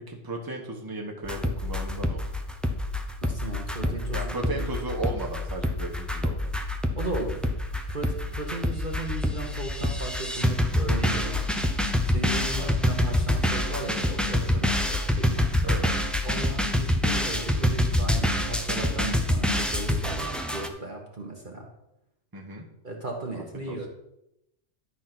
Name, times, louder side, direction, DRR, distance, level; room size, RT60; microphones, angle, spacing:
voice 1, 0.1-2.3 3.8-6.5 12.6-12.8 15.6-16.1 22.3-22.6 23.3-23.8, right 2 dB, 15° right, -1 dB, 1.3 m, -35 dB
sound 1, 1.2-20.7, left 1 dB, ahead, 0.5 m, -27 dB
voice 2, 3.2-4.7 7.0-7.4 7.9-11.5 12.1-15.5 16.2-21.7 22.8-23.9, right 2 dB, 40° right, 0 dB, 1.3 m, -36 dB
11.0 x 4.2 x 6.0 m, 0.85 s
omnidirectional pair, 1.3 m